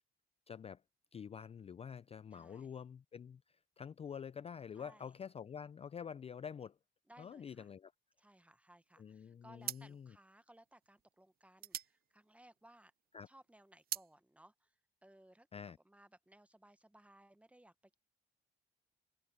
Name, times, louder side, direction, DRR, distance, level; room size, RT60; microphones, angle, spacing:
voice 1, 0.5-0.8 1.1-3.4 3.8-6.8 7.2-7.9 9.0-10.1 13.1-13.3 15.5-15.8, left 7 dB, 30° left, 0.4 m, -47 dB
voice 2, 2.3-2.8 4.7-5.2 7.1-7.7 8.2-12.9 13.3-18.0, right 1 dB, 5° right, 0.9 m, -63 dB
sound 1, 8.9-9.2 9.6-13.0 13.3-14.2, right 11 dB, 50° right, 0.4 m, -45 dB
open air
cardioid pair, 90°, 20 cm